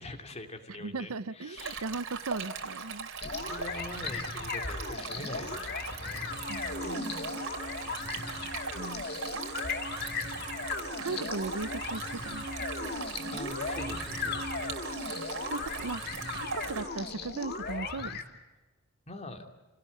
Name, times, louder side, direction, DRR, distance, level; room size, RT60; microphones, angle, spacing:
voice 1, 0.0-1.8 3.2-6.4 13.3-14.7 19.1-19.4, left 1 dB, 30° left, 5 dB, 2.6 m, -44 dB
voice 2, 0.8-3.1 6.5-7.1 8.7-9.0 11.0-12.9 15.5-16.0 16.3-18.2, right 3 dB, 75° right, 16 dB, 0.8 m, -38 dB
Stream, 1.6-16.8, right 5 dB, 60° right, 3.1 m, -41 dB
sound 1, 3.2-18.2, left 4 dB, 45° left, 2.4 m, -37 dB
sound 2, 6.3-16.9, right 3 dB, 30° right, 0.7 m, -44 dB
29.5 x 18.0 x 8.4 m, 1.3 s
head